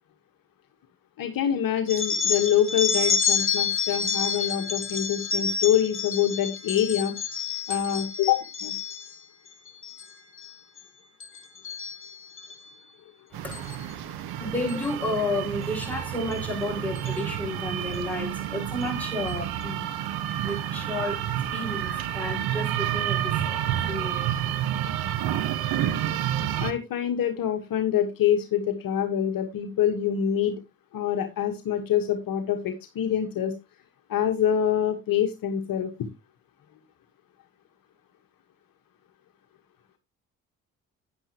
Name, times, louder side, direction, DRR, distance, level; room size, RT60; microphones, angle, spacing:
voice 1, 1.2-7.1 7.7-8.7 26.6-30.6 30.9-33.5 34.1-35.9, left 9 dB, 55° left, 1.4 m, -25 dB
sound 1, 1.9-9.2 9.7-10.1 10.4-10.8 11.2-12.5 13.5-13.7 14.7-14.9 15.8-15.9 16.3-16.4 16.9-17.2, left 6 dB, 30° left, 2.0 m, -29 dB
sound 2, 13.3-26.7, right 11 dB, 65° right, 1.3 m, -29 dB
voice 2, 13.4-24.4, left 1 dB, 5° left, 6.1 m, -32 dB
9.8 x 9.7 x 2.9 m
hypercardioid pair, 50°, 39 cm